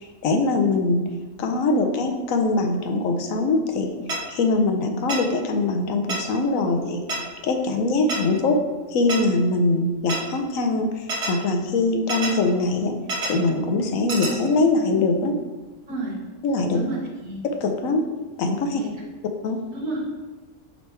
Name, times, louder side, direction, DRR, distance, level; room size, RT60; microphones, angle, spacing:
voice 1, 0.2-1.0 1.4-3.9 4.3-7.0 7.4-8.6 8.9-10.9 11.3-12.9 13.2-15.3 16.4-16.8 17.6-18.0 18.4-18.8 19.4-19.6, left 3 dB, 85° left, 4 dB, 1.1 m, -22 dB
sound 1, 4.1-4.2 5.1-5.2 6.1-6.2 7.1-7.2 8.1-8.2 9.1-9.2 10.1-10.2 11.1-11.3 12.1-12.3 13.1-13.3 14.1-14.3, right 2 dB, 60° right, 1.2 m, -26 dB
voice 2, 15.9-16.2 16.7-17.0 17.2-17.4 18.7-18.9 19.7-20.0, right 2 dB, 85° right, -4 dB, 1.9 m, -30 dB
8.8 x 3.2 x 3.3 m, 1.2 s
omnidirectional pair, 1.4 m